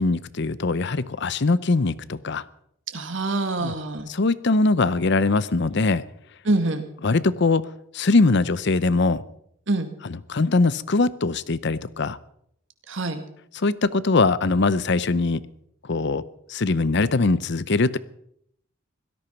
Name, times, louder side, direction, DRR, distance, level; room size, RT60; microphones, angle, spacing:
voice 1, 0.0-2.4 3.6-3.7 4.1-6.0 7.0-7.7 7.9-9.2 10.3-12.2 13.6-15.4 15.9-16.2 16.5-18.0, left 3 dB, 60° left, 17 dB, 0.7 m, -21 dB
voice 2, 2.9-4.1 6.4-6.9 9.7-9.9 12.9-13.2, right 2 dB, 65° right, 7 dB, 2.0 m, -25 dB
17.0 x 13.5 x 5.9 m, 0.71 s
head